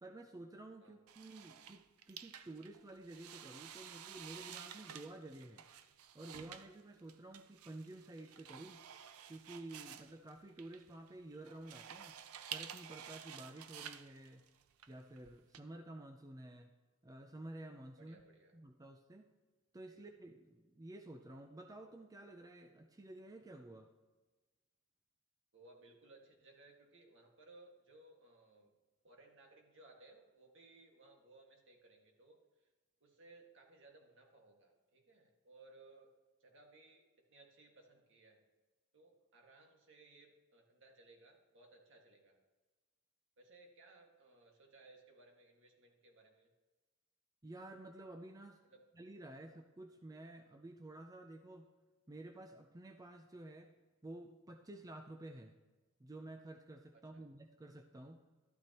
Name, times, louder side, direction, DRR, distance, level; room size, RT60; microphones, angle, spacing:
voice 1, 0.0-5.7 6.1-8.8 9.3-12.2 12.5-14.4 14.9-16.7 17.0-18.2 18.5-19.3 19.7-23.9 47.4-48.6 48.9-51.7 52.1-53.7 54.0-55.5 56.0-58.2, right 1 dB, 15° right, 5 dB, 0.5 m, -52 dB
sound 1, 1.1-15.6, right 9 dB, 85° right, 0.6 m, -52 dB
voice 2, 18.0-18.6 19.9-20.0 25.5-28.7 29.0-32.7 33.0-36.1 36.4-38.4 38.9-42.4 43.4-46.5 48.6-48.8 56.9-57.3, right 2 dB, 60° right, 1 dB, 1.8 m, -62 dB
13.0 x 12.0 x 3.0 m, 1.2 s
head